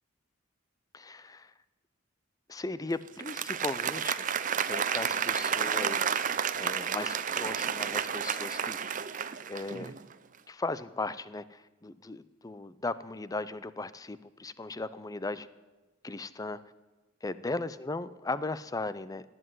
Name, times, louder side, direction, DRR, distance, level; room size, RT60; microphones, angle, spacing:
voice 1, 0.9-1.5 2.5-4.3 4.7-6.2 6.6-8.8 9.5-9.9 10.5-15.5 16.0-16.6 17.2-19.2, left 3 dB, 20° left, 15 dB, 0.5 m, -37 dB
Applause, 3.1-10.1, right 7 dB, 40° right, 0.6 m, -31 dB
18.5 x 7.9 x 9.6 m, 1.2 s
head